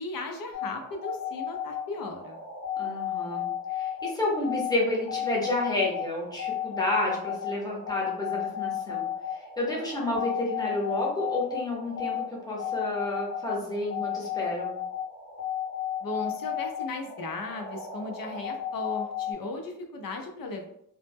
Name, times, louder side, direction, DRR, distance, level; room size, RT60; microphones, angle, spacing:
voice 1, 0.0-2.4 16.0-20.7, left 3 dB, 85° left, 4 dB, 0.5 m, -36 dB
sound 1, 0.5-19.3, left 9 dB, 55° left, 0.9 m, -34 dB
voice 2, 2.8-3.4 3.7-9.1 9.6-14.8, left 2 dB, 10° left, -3 dB, 0.6 m, -30 dB
2.1 x 2.0 x 3.3 m, 0.72 s
wide cardioid pair, 160°, 33 cm